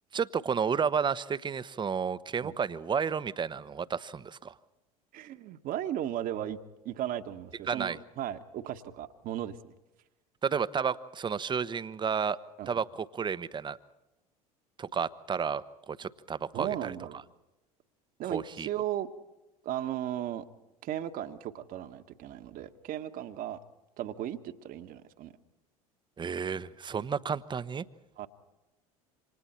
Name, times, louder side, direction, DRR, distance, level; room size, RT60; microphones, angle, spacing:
voice 1, 0.1-4.5 7.7-8.0 10.4-12.4 12.7-13.8 14.8-16.9 18.3-18.7 26.2-27.8, right 6 dB, 25° right, 15 dB, 1.0 m, -31 dB
voice 2, 5.1-6.6 6.8-9.6 12.6-12.8 16.5-17.2 18.2-19.1 19.6-20.4 20.8-23.6 24.0-25.3 28.2-28.3, right 11 dB, 45° right, 7 dB, 1.5 m, -36 dB
28.5 x 26.5 x 4.4 m, 0.98 s
figure-of-eight pair, 70°, 19 cm